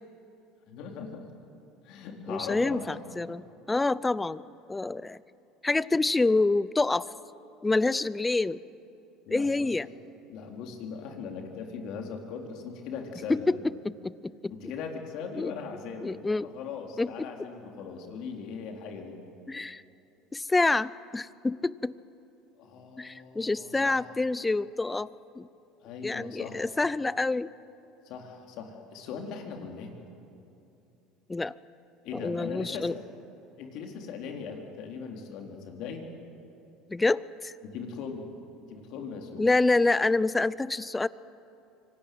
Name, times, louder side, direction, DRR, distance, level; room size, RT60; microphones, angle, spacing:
voice 1, 0.7-1.3 1.8-2.9 9.3-9.7 10.3-13.5 14.5-16.2 16.4-19.2 22.6-24.0 25.8-26.7 28.0-29.9 32.0-32.9 33.6-36.1 37.6-38.3 38.7-39.5, left 5 dB, 65° left, 3 dB, 3.7 m, -39 dB
voice 2, 2.3-4.4 4.7-5.2 5.6-7.1 7.6-8.6 9.3-9.9 13.3-14.1 15.4-15.5 16.0-16.5 17.0-17.3 19.5-19.8 20.3-21.9 23.0-25.5 26.0-27.5 31.3-31.5 32.1-32.9 36.9-37.5 39.4-41.1, left 3 dB, 15° left, 19 dB, 0.6 m, -27 dB
25.0 x 18.0 x 9.5 m, 2.8 s
supercardioid pair, 95°, 0 cm